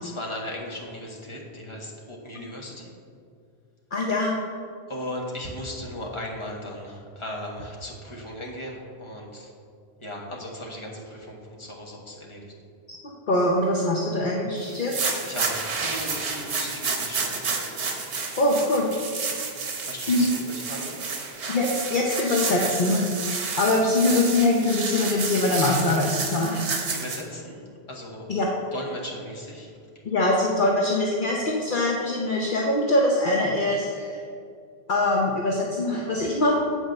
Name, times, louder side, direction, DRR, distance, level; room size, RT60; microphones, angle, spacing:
voice 1, 0.0-2.9 4.9-9.5 10.0-12.5 15.2-17.4 19.3-19.5 19.9-21.1 26.9-27.6 27.9-28.3 28.7-29.7, left 1 dB, 30° left, -1 dB, 1.3 m, -37 dB
voice 2, 3.9-4.4 13.3-14.9 18.4-18.9 20.1-20.3 21.5-26.7 28.3-28.5 30.0-34.2 34.9-36.5, left 2 dB, 50° left, -2 dB, 0.9 m, -23 dB
sound 1, 14.7-27.2, right 4 dB, 85° right, 1.3 m, -30 dB
8.3 x 4.7 x 6.5 m, 2.3 s
omnidirectional pair, 1.1 m